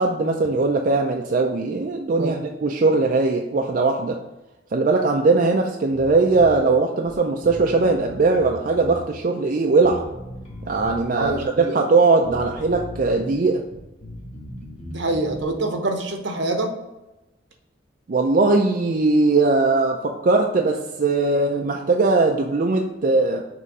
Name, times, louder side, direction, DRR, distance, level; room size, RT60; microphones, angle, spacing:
voice 1, 0.0-4.2 4.7-10.0 10.6-13.6 18.1-23.4, right 3 dB, 45° right, 2 dB, 0.4 m, -20 dB
Bass guitar, 5.9-6.6 7.1-7.2 7.4-9.0 9.8-11.4 12.2-13.3 13.6-15.5, equal, 35° left, 1.2 m, -37 dB
voice 2, 11.1-11.8 14.9-16.7, right 2 dB, 70° right, 4 dB, 0.9 m, -25 dB
6.6 x 3.1 x 4.8 m, 0.99 s
head